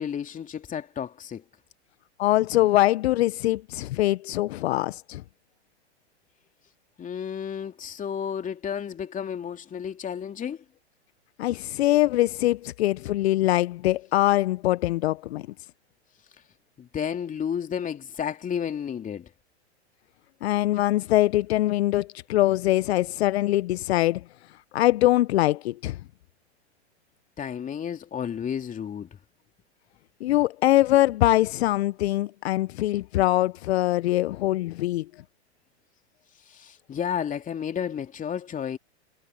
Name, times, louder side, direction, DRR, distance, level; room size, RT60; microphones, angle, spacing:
voice 1, 0.0-1.4 7.0-10.6 16.8-19.3 27.4-29.1 36.5-38.8, left 8 dB, 25° left, 3.0 m, -32 dB
voice 2, 2.2-5.2 11.4-15.5 20.4-24.2 24.7-26.0 30.2-35.0, left 16 dB, 65° left, 0.9 m, -23 dB
hypercardioid pair, 110°, 34 cm